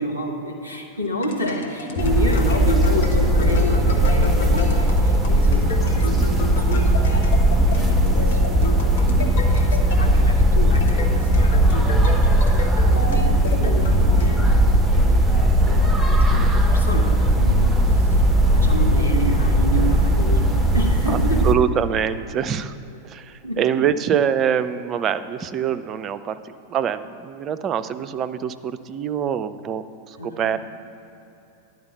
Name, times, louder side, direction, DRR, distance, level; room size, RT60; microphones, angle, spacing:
voice 1, 0.0-12.2 12.5-21.5 23.4-23.9 30.2-30.6, equal, 85° left, -1 dB, 1.2 m, -30 dB
sound 1, 0.9-14.8, left 3 dB, 60° left, 1.2 m, -30 dB
sound 2, 2.0-21.5, right 1 dB, 10° right, 0.8 m, -18 dB
voice 2, 21.4-22.7 23.0-26.4 26.7-30.6, right 8 dB, 30° right, 11 dB, 0.4 m, -24 dB
11.0 x 4.6 x 8.1 m, 3.0 s
figure-of-eight pair, 90°, 0 cm